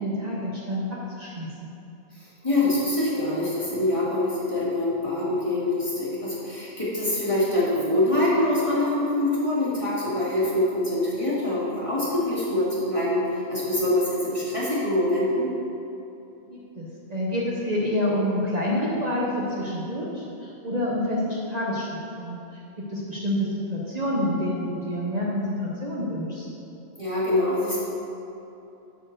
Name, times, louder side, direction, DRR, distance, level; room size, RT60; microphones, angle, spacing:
voice 1, 0.0-1.5 16.5-19.3 19.6-21.9 22.2-22.4 22.8-26.5, left 1 dB, 40° right, -4 dB, 0.9 m, -28 dB
voice 2, 2.1-15.5 27.0-27.8, left 1 dB, 30° left, -8 dB, 2.1 m, -24 dB
8.0 x 4.4 x 6.5 m, 2.9 s
omnidirectional pair, 1.1 m